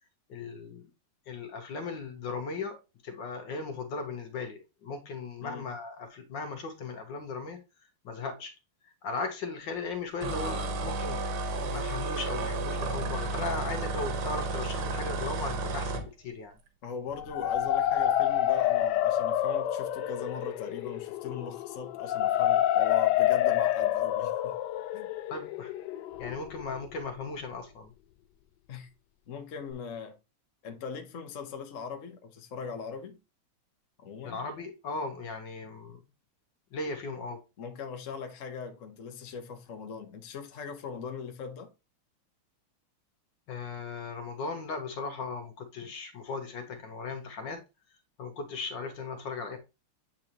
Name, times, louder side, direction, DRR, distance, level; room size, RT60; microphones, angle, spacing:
voice 1, 0.3-0.8 1.3-2.8 3.0-7.6 8.0-8.5 8.8-11.3 11.7-16.5 25.3-25.7 26.2-27.9 34.2-36.0 36.7-37.4 43.5-47.6 48.2-49.6, left 4 dB, 60° left, 1.6 m, -37 dB
sound 1, 10.2-16.1, right 3 dB, 85° right, 2.0 m, -32 dB
voice 2, 16.8-24.5 24.9-25.1 28.7-28.9 29.3-30.2 30.6-33.2 34.0-34.4 37.6-41.7, left 6 dB, 45° left, 1.1 m, -40 dB
sound 2, 17.2-27.0, left 12 dB, 85° left, 0.9 m, -28 dB
8.7 x 3.9 x 2.9 m
omnidirectional pair, 2.4 m